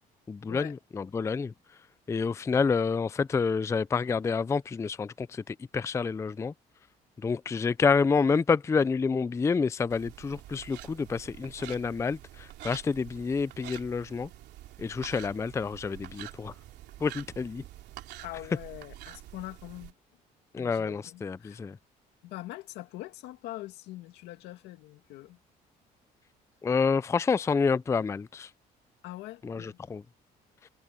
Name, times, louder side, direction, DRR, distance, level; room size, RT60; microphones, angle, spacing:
voice 1, 0.3-1.5 2.1-6.5 7.2-14.3 14.8-16.5 17.0-17.6 20.5-21.8 26.6-28.5 29.4-30.0, left 5 dB, 15° left, 0.4 m, -28 dB
sound 1, 9.9-19.9, right 15 dB, 80° right, 3.1 m, -47 dB
voice 2, 18.2-19.9 20.6-21.6 22.2-25.4 29.0-29.8, left 16 dB, 90° left, 2.2 m, -43 dB
cardioid pair, 110°, 17 cm